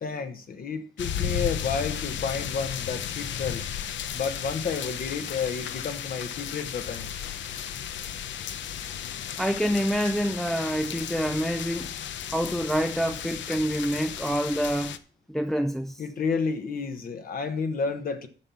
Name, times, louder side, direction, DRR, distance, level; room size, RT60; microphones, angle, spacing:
voice 1, 0.0-3.6 4.1-7.1 16.0-18.3, left 5 dB, 50° left, 1.2 m, -31 dB
sound 1, 1.0-15.0, left 9 dB, 75° left, 0.8 m, -34 dB
Telephone, 2.6-4.1 4.5-8.1, left 3 dB, 35° left, 1.8 m, -50 dB
voice 2, 9.4-11.9 12.3-14.9 15.3-16.0, equal, ahead, 0.4 m, -27 dB
9.8 x 6.1 x 6.9 m
cardioid pair, 145°, 19 cm